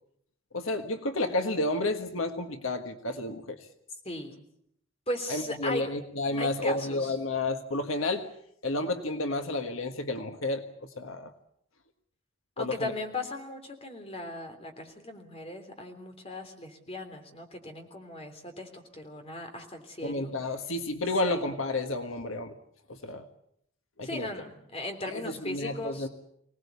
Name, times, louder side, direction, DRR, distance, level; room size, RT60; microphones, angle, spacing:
voice 1, 0.5-3.6 5.3-8.3 8.6-10.6 11.0-11.3 12.6-12.9 20.0-22.5 22.9-23.2 24.0-24.3 25.1-26.1, left 2 dB, 75° left, 7 dB, 1.6 m, -31 dB
voice 2, 5.1-5.9 6.3-7.2 12.6-20.3 21.3-21.4 24.0-26.1, left 2 dB, 30° left, 5 dB, 3.5 m, -37 dB
25.0 x 18.5 x 8.4 m, 0.72 s
head